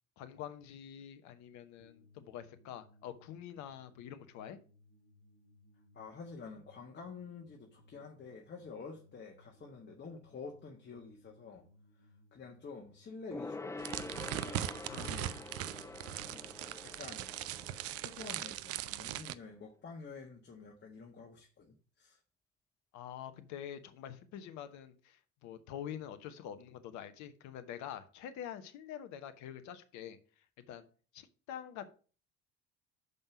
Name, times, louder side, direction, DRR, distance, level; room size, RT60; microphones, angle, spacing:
voice 1, 0.2-4.6 14.9-15.5 22.9-30.8 31.1-31.9, left 10 dB, 55° left, 11 dB, 1.0 m, -46 dB
sound 1, 1.8-14.9, left 1 dB, 75° right, 1.5 m, -65 dB
voice 2, 5.9-11.6 12.3-13.7 14.9-15.4 16.3-16.5 16.8-17.3 17.8-22.2, left 4 dB, 30° left, 1 dB, 1.5 m, -49 dB
Gong, 13.3-19.2 19.5-19.6, left 3 dB, 10° left, 0.5 m, -46 dB
sound 2, 13.8-19.3, right 13 dB, 45° right, 0.5 m, -40 dB
6.6 x 5.5 x 5.8 m, 0.38 s
figure-of-eight pair, 55°, 34 cm